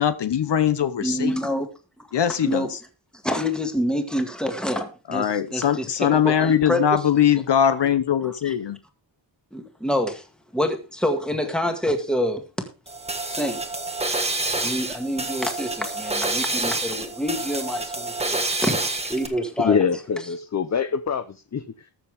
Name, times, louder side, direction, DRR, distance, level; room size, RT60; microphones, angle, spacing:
voice 1, 0.0-1.3 2.1-2.8 5.1-8.8, left 9 dB, 65° left, 0.9 m, -21 dB
voice 2, 1.0-1.7 2.4-2.7 3.2-6.8 8.2-8.5 9.5-10.2 10.5-12.4 13.3-13.6 14.6-18.8 19.1-19.8, equal, ahead, 2.0 m, -27 dB
sound 1, 12.9-19.3, right 2 dB, 15° right, 1.4 m, -28 dB
voice 3, 19.6-21.9, left 6 dB, 35° left, 0.7 m, -24 dB
20.5 x 7.1 x 3.5 m
wide cardioid pair, 165°, 46 cm